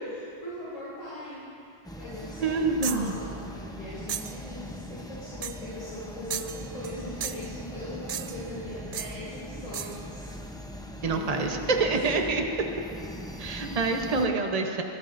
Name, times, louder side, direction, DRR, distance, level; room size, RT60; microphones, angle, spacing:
voice 1, 0.1-10.4 11.1-12.2, left 1 dB, 30° left, -9 dB, 3.0 m, -40 dB
sound 1, 1.8-14.3, equal, 5° left, 0.6 m, -41 dB
voice 2, 2.4-3.1 11.0-12.7 13.4-14.8, right 3 dB, 35° right, 3 dB, 1.0 m, -26 dB
sound 2, 2.8-3.1 4.1-4.4 5.4-5.7 6.3-7.0 7.2-7.5 8.1-8.5 8.9-9.2 9.7-10.0, right 8 dB, 70° right, 0.3 m, -35 dB
23.5 x 15.0 x 2.6 m, 2.7 s
omnidirectional pair, 1.2 m